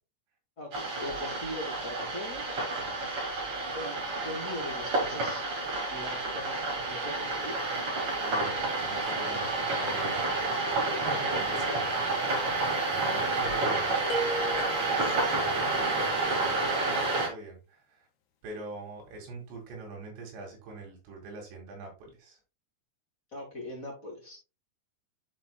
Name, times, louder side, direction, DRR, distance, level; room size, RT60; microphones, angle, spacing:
voice 1, 0.6-2.4 3.7-5.4 5.9-7.6 10.4-11.2 11.7-11.8 13.0-13.4 23.3-24.4, left 1 dB, 40° left, -3 dB, 1.2 m, -41 dB
sound 1, 0.7-17.3, right 2 dB, 40° right, 2.4 m, -30 dB
voice 2, 8.3-10.5 11.1-11.8 12.7-14.0 15.0-18.0 18.4-22.4, right 2 dB, 85° right, 1 dB, 4.4 m, -44 dB
sound 2, 14.1-15.3, right 1 dB, 80° left, 3.0 m, -34 dB
12.0 x 4.2 x 2.2 m, 0.32 s
omnidirectional pair, 4.9 m